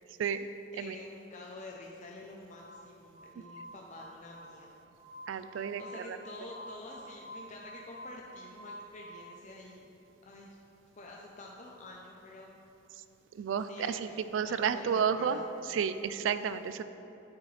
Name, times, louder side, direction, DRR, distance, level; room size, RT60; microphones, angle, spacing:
voice 1, 0.7-4.7 5.8-9.9 10.2-10.6 11.0-12.5 13.7-15.5, left 2 dB, 40° left, -1 dB, 0.6 m, -48 dB
Glass, 2.5-9.2, equal, 5° left, 1.1 m, -49 dB
voice 2, 5.3-5.8 6.1-6.2 13.3-15.4 15.7-16.8, right 7 dB, 80° right, 12 dB, 0.3 m, -31 dB
9.5 x 6.3 x 3.3 m, 3.0 s
head